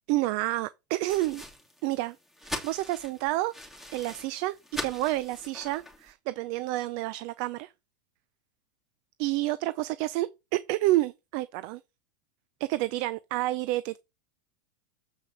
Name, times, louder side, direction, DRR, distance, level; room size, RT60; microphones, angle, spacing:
voice 1, 0.1-1.4 1.8-2.2 2.4-3.5 3.9-4.5 4.8-7.7 9.2-11.8 12.6-14.0, right 17 dB, 50° right, 0.6 m, -29 dB
sound 1, 1.0-6.1, left 1 dB, ahead, 2.5 m, -41 dB
7.6 x 5.7 x 6.5 m
supercardioid pair, 140°, 10 cm